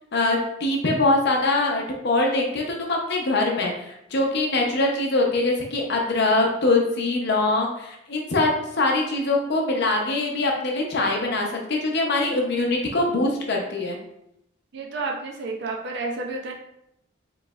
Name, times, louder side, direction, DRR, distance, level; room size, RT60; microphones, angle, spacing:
voice 1, 0.1-14.0, left 2 dB, 55° left, 0 dB, 0.7 m, -23 dB
voice 2, 14.7-16.5, right 3 dB, 55° right, 1 dB, 0.5 m, -30 dB
4.9 x 3.1 x 2.3 m, 0.79 s
head